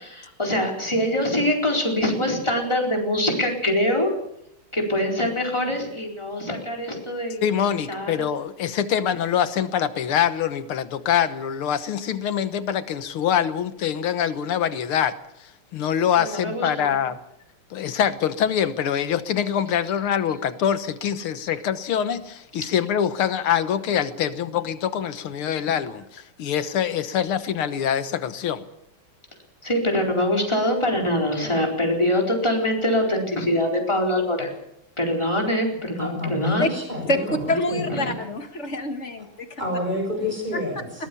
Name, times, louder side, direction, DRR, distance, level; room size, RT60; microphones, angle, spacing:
voice 1, 0.2-4.1 4.7-7.4 7.9-8.3 16.2-16.9 29.6-34.5 35.0-36.7 37.9-38.1, left 1 dB, 10° left, 0 dB, 4.4 m, -24 dB
voice 2, 7.4-17.2 17.7-28.6, left 9 dB, 80° left, 12 dB, 2.0 m, -24 dB
voice 3, 35.9-38.0 39.6-41.1, left 1 dB, 20° right, 3 dB, 6.9 m, -29 dB
voice 4, 37.1-39.6 40.2-40.6 41.0-41.1, left 1 dB, 35° left, 7 dB, 1.8 m, -27 dB
21.5 x 18.5 x 7.1 m, 0.76 s
omnidirectional pair, 2.4 m